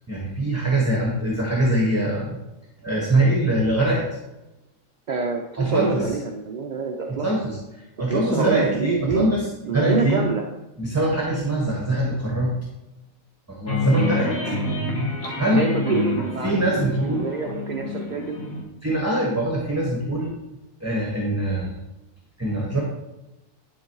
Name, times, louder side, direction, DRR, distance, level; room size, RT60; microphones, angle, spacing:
voice 1, 0.0-2.4 2.8-4.0 5.6-6.1 7.1-10.2 10.8-12.5 13.5-14.3 15.4-15.6 16.4-17.3 18.8-20.3 20.8-21.7 22.4-22.8, right 1 dB, 10° right, -3 dB, 1.3 m, -23 dB
voice 2, 5.1-7.3 8.1-9.3 9.6-10.5 14.1-14.2 15.5-18.4, right 4 dB, 45° right, 1 dB, 0.6 m, -26 dB
sound 1, 13.7-18.6, left 3 dB, 85° left, 1.8 m, -28 dB
11.0 x 3.9 x 4.6 m, 0.97 s
omnidirectional pair, 1.4 m